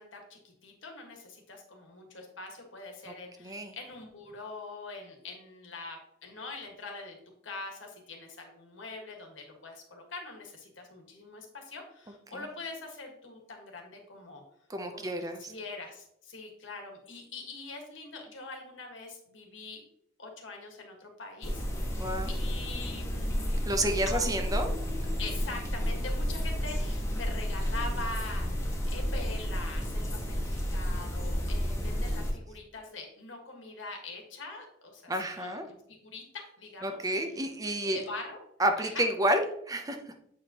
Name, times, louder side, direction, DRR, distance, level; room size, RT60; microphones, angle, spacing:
voice 1, 0.0-7.2 7.4-14.4 14.9-15.1 15.4-19.8 20.2-23.6 24.0-24.5 25.2-37.0 37.8-38.4 38.8-39.0, left 3 dB, 80° left, 2 dB, 1.6 m, -43 dB
voice 2, 3.4-3.8 12.3-12.4 14.7-15.5 22.0-22.3 23.7-24.7 35.1-35.7 36.8-38.0 38.6-40.0, right 1 dB, 20° right, 6 dB, 0.6 m, -30 dB
sound 1, 21.4-32.3, equal, 15° left, 1.2 m, -31 dB
7.9 x 4.9 x 2.9 m, 0.73 s
head